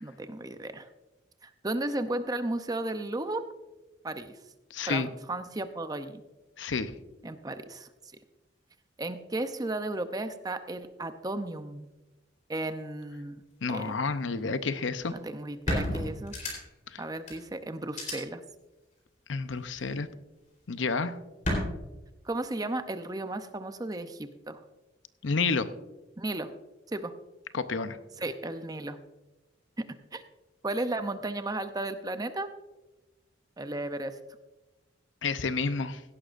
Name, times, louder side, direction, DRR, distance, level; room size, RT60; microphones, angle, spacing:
voice 1, 0.0-0.9 1.4-3.4 4.0-4.4 4.9-6.2 7.2-7.9 9.0-11.9 12.5-13.4 13.7-13.9 15.1-16.3 17.0-18.4 22.2-24.6 26.2-26.5 26.9-27.1 28.2-29.0 29.8-29.9 30.1-30.2 30.6-32.5 33.6-34.1, right 2 dB, 20° right, 9 dB, 0.6 m, -34 dB
voice 2, 4.7-5.1 6.6-6.9 13.6-15.1 16.9-17.0 19.3-20.1 20.7-21.2 25.2-25.7 27.5-28.0 35.2-36.0, left 4 dB, 80° left, 12 dB, 0.7 m, -30 dB
sound 1, 15.1-15.2 15.7-16.9 17.3-17.4 17.9-18.1 19.5-19.9 21.4-21.6, left 1 dB, 40° left, 3.8 m, -30 dB
16.5 x 11.5 x 2.5 m, 1.1 s
head